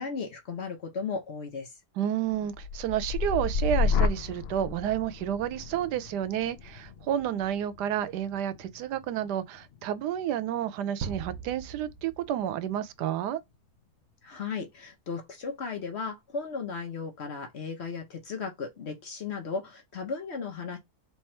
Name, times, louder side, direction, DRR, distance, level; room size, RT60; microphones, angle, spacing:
voice 1, 0.0-1.7 14.2-20.8, left 5 dB, 50° left, 0.9 m, -35 dB
voice 2, 2.0-13.4, right 10 dB, 85° right, 1.2 m, -30 dB
sound 1, 2.3-10.3 10.8-11.3, left 5 dB, 80° left, 0.5 m, -32 dB
sound 2, 11.0-13.0, right 6 dB, 65° right, 1.0 m, -40 dB
3.4 x 3.0 x 4.3 m
omnidirectional pair, 1.7 m